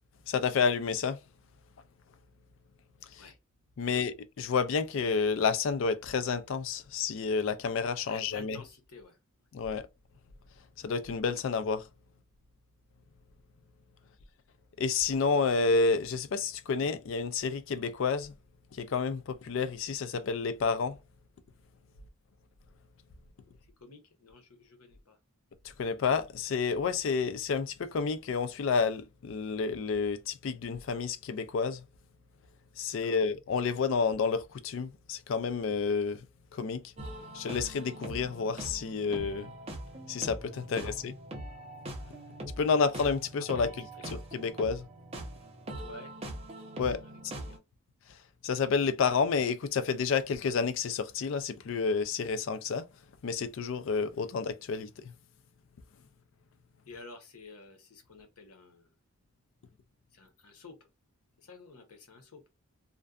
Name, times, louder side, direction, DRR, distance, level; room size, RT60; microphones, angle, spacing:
voice 1, 0.3-1.2 3.1-3.2 3.8-8.6 9.5-9.9 10.8-11.9 14.8-18.3 18.7-21.0 25.6-31.8 32.8-36.2 36.5-36.8 37.3-39.5 40.1-41.1 42.6-44.9 46.8-47.0 48.4-52.9 53.2-55.1, left 5 dB, 60° left, 0.3 m, -30 dB
voice 2, 8.0-9.2 23.6-25.2 33.0-33.2 40.8-41.0 43.5-44.2 45.8-46.1 47.0-47.6 56.9-58.9 60.1-60.8 61.4-62.4, left 3 dB, 85° left, 0.9 m, -51 dB
sound 1, 37.0-47.6, right 1 dB, 30° right, 0.6 m, -42 dB
2.5 x 2.2 x 2.2 m
head